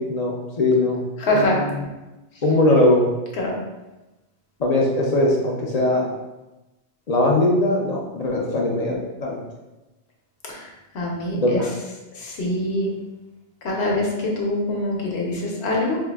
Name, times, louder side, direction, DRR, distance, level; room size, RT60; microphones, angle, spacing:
voice 1, 0.0-1.0 1.3-1.8 2.4-3.0 4.6-6.1 7.1-9.4 11.4-11.7, left 1 dB, 50° left, -2 dB, 0.5 m, -20 dB
voice 2, 1.2-1.6 3.3-3.6 10.5-10.7 10.9-11.6 12.2-12.9 13.6-16.0, left 1 dB, 70° left, -2 dB, 1.0 m, -24 dB
4.6 x 2.5 x 2.3 m, 1.1 s
omnidirectional pair, 1.2 m